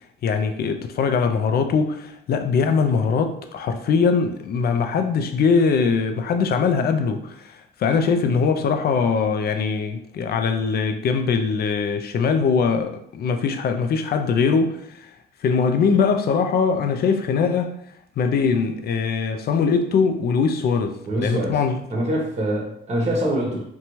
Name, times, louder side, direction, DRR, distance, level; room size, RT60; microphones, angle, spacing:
voice 1, 0.2-15.1 15.4-17.8 18.2-22.0, left 5 dB, 50° left, 0.4 m, -21 dB
voice 2, 21.1-21.6 21.9-23.6, right 1 dB, 35° right, 0.9 m, -24 dB
2.6 x 2.2 x 3.0 m
cardioid pair, 90°, 20 cm